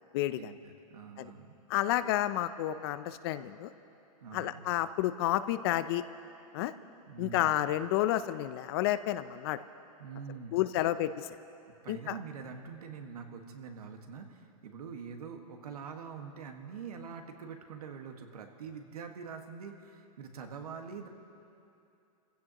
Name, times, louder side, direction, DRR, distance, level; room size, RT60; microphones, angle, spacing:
voice 1, 0.3-1.5 4.2-4.6 7.1-7.6 10.0-10.6 11.7-21.1, right 6 dB, 85° right, 4 dB, 1.6 m, -45 dB
voice 2, 1.7-3.7 4.3-6.0 6.5-6.7 7.2-9.6 10.5-11.1 11.9-12.1, left 14 dB, 40° left, 13 dB, 0.5 m, -30 dB
28.0 x 16.0 x 2.9 m, 2.7 s
hypercardioid pair, 150°, 19 cm